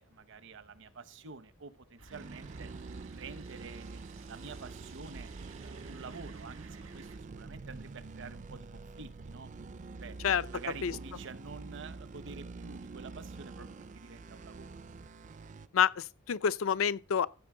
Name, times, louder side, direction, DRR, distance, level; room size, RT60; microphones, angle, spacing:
voice 1, 0.0-2.7 3.1-4.0 4.3-5.3 5.6-7.1 7.3-9.5 10.0-10.2 10.5-14.8, right 4 dB, 65° right, 0.8 m, -48 dB
sound 1, 2.0-7.2, right 4 dB, 85° right, 1.8 m, -55 dB
sound 2, 2.1-15.7, right 3 dB, 35° right, 0.4 m, -46 dB
voice 2, 15.7-17.3, left 7 dB, 80° left, 0.5 m, -28 dB
15.0 x 6.1 x 3.7 m
head